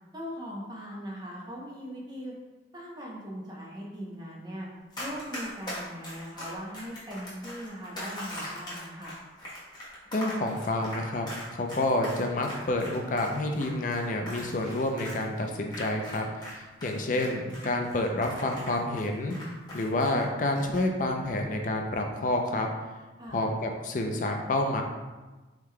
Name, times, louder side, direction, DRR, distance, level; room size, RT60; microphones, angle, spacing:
voice 1, 0.1-2.3 2.7-4.7 5.0-9.1 23.2-23.4, equal, 25° right, -3 dB, 0.7 m, -40 dB
Run, 4.9-16.5 16.8-20.2 20.5-20.8, left 1 dB, 25° left, 1.1 m, -40 dB
voice 2, 10.1-11.3 11.5-19.4 19.7-22.7 23.3-24.8, left 2 dB, 45° left, 3 dB, 0.4 m, -29 dB
4.7 x 3.6 x 2.2 m, 1.2 s
head